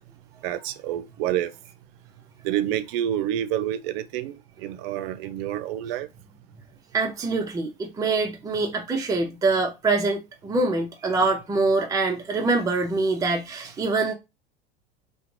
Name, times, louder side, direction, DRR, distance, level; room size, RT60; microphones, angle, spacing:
voice 1, 0.4-1.5 2.4-6.1, right 11 dB, 60° right, 0.5 m, -28 dB
voice 2, 6.9-14.1, right 3 dB, 10° right, 0.5 m, -24 dB
2.4 x 2.2 x 3.1 m
hypercardioid pair, 90°, 33 cm